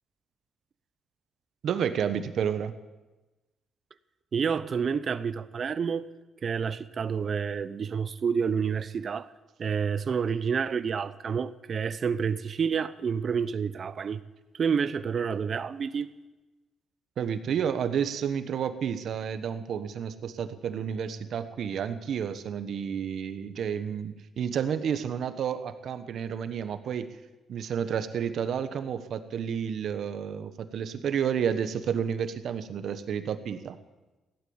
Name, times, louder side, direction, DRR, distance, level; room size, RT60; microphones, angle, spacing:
voice 1, 1.6-2.7 17.2-27.1 27.5-33.8, right 8 dB, 65° right, 1.2 m, -30 dB
voice 2, 4.3-6.1 6.4-9.3 9.6-14.2 14.5-16.1, right 6 dB, 50° right, 0.7 m, -29 dB
16.5 x 11.5 x 7.2 m
cardioid pair, 90°, 0 cm